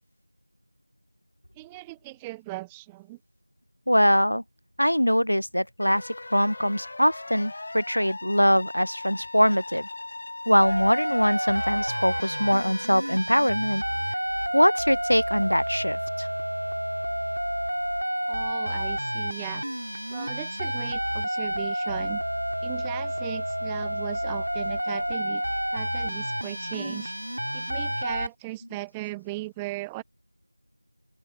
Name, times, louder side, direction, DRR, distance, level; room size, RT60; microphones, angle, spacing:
voice 1, 1.5-3.2 18.3-19.6 20.1-22.2 22.6-25.4 25.7-27.1 27.5-30.0, right 21 dB, 5° right, 1.4 m, -38 dB
voice 2, 3.9-4.4 4.8-9.9 10.5-13.8 14.5-16.3, equal, 85° left, 0.8 m, -22 dB
sound 1, 5.8-13.2, left 2 dB, 25° left, 3.0 m, -39 dB
sound 2, 10.6-28.3, equal, 70° right, 4.3 m, -30 dB
figure-of-eight pair, 175°, 0 cm